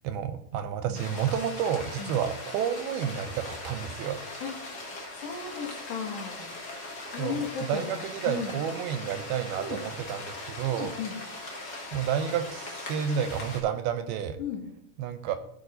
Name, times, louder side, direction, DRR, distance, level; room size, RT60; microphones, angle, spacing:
voice 1, 0.0-4.2 7.2-10.9 11.9-14.4 15.0-15.4, right 8 dB, 80° right, 8 dB, 2.4 m, -30 dB
sound 1, 0.9-13.6, left 2 dB, 60° left, 1.0 m, -40 dB
voice 2, 5.1-6.5 7.1-8.5 9.6-9.8 10.7-11.1 14.4-14.6, left 6 dB, 85° left, 0 dB, 4.0 m, -35 dB
15.5 x 6.3 x 2.6 m, 0.78 s
omnidirectional pair, 4.7 m